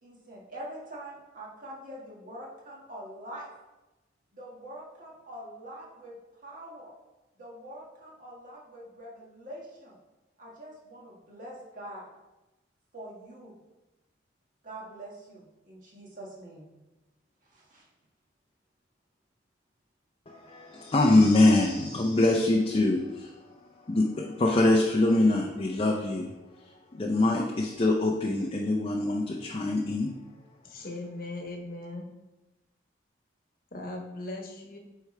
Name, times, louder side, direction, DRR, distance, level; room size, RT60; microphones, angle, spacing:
voice 1, 0.0-3.5 4.3-6.1 6.4-6.9 7.4-10.0 10.4-12.1 12.9-13.6 14.6-16.7 17.4-17.9, right 1 dB, 45° right, -4 dB, 1.8 m, -44 dB
voice 2, 20.3-23.4 23.9-26.3 26.6-30.1, left 2 dB, 30° left, 0 dB, 0.5 m, -24 dB
voice 3, 30.6-32.1 33.7-34.8, left 2 dB, 50° left, 2 dB, 1.1 m, -38 dB
8.0 x 4.6 x 3.3 m, 1.1 s
head